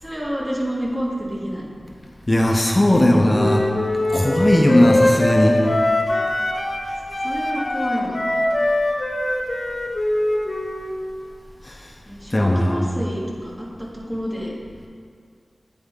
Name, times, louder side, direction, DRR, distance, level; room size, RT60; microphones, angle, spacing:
voice 1, 0.0-1.6 2.9-3.7 7.2-8.2 12.1-14.5, equal, 25° right, -4 dB, 1.6 m, -29 dB
voice 2, 2.3-3.6 4.1-5.7 11.6-11.9 12.3-12.9, left 1 dB, 30° left, 1 dB, 0.6 m, -17 dB
Wind instrument woodwind instrument, 3.3-6.9 7.1-11.0, left 1 dB, 55° left, 0.9 m, -22 dB
9.3 x 4.3 x 3.6 m, 2.1 s
cardioid pair, 45°, 0 cm